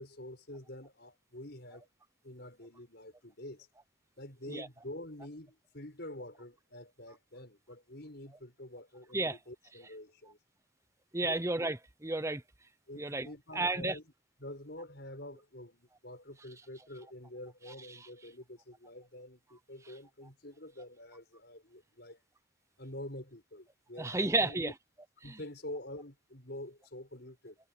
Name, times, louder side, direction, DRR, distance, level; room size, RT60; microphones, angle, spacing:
voice 1, 0.0-1.9 2.2-3.7 4.2-10.4 11.2-11.4 12.9-14.1 14.4-22.2 22.8-24.7 25.2-27.6, left 1 dB, 50° left, 6.9 m, -47 dB
voice 2, 11.1-12.4 13.0-13.3 13.5-14.0 24.0-24.7 25.3-25.4, right 2 dB, 15° right, 0.7 m, -32 dB
head